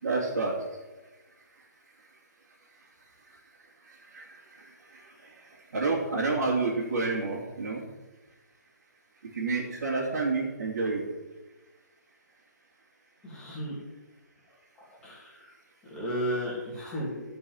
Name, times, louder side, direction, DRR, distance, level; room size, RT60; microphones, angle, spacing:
voice 1, 0.0-0.5 4.1-4.2 5.7-7.8 9.3-11.0, right 3 dB, 60° right, -5 dB, 3.0 m, -28 dB
voice 2, 13.2-13.8 14.8-15.5 15.9-17.2, equal, 10° left, -6 dB, 2.7 m, -34 dB
10.5 x 5.5 x 8.0 m, 1.1 s
hypercardioid pair, 170°, 10 cm